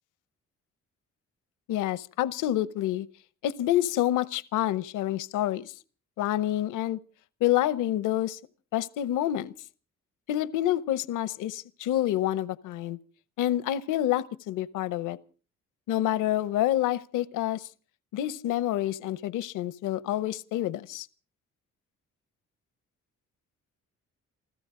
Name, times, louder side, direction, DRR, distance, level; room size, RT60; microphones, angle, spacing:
voice 1, 1.7-3.1 3.4-5.7 6.2-7.0 7.4-8.4 8.7-9.5 10.3-13.0 13.4-15.2 15.9-17.7 18.1-21.1, left 13 dB, 90° left, 0.8 m, -28 dB
28.0 x 13.5 x 3.7 m
cardioid pair, 90°, 30 cm